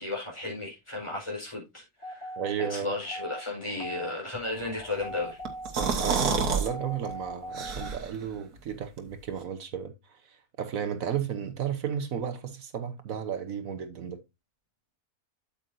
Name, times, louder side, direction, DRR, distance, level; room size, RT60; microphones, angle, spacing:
voice 1, 0.0-2.3 2.7-5.4, left 2 dB, 20° left, 4.5 m, -34 dB
sound 1, 2.0-7.9, equal, 45° left, 3.2 m, -41 dB
voice 2, 2.4-3.0 5.8-14.2, right 8 dB, 65° right, 1.3 m, -34 dB
sound 2, 5.5-6.7 7.1-7.2 7.5-8.2, right 5 dB, 80° right, 1.9 m, -28 dB
8.6 x 7.8 x 2.6 m
omnidirectional pair, 1.6 m